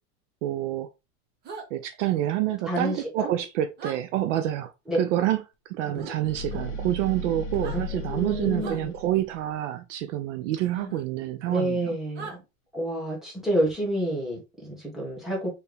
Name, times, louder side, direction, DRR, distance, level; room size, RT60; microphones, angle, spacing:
voice 1, 0.4-0.9 1.7-12.0, right 13 dB, 55° right, 0.5 m, -28 dB
sound 1, 1.4-1.7 3.8-4.0 5.9-6.1 7.5-7.8 8.6-8.8 10.9-11.0 12.1-12.4, right 4 dB, 25° right, 0.9 m, -39 dB
voice 2, 2.6-3.3 4.9-5.0 5.9-6.0 8.1-8.9 10.8-10.9 11.5-12.3 12.7-15.5, right 1 dB, ahead, 1.4 m, -29 dB
sound 2, 6.2-9.5, left 2 dB, 30° left, 0.9 m, -35 dB
4.6 x 3.3 x 3.3 m
supercardioid pair, 165°, 44 cm